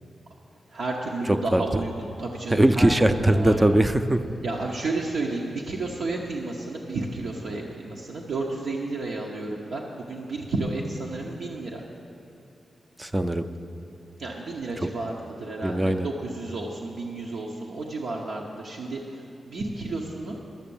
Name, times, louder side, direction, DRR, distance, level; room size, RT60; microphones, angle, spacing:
voice 1, 0.7-3.7 4.4-11.8 14.2-19.0 19.5-20.4, right 2 dB, 75° right, -2 dB, 0.9 m, -32 dB
voice 2, 1.3-1.6 2.5-4.2 13.0-13.5 15.6-16.1, right 1 dB, 15° right, 10 dB, 0.4 m, -20 dB
11.5 x 6.8 x 7.1 m, 2.6 s
wide cardioid pair, 100°, 0 cm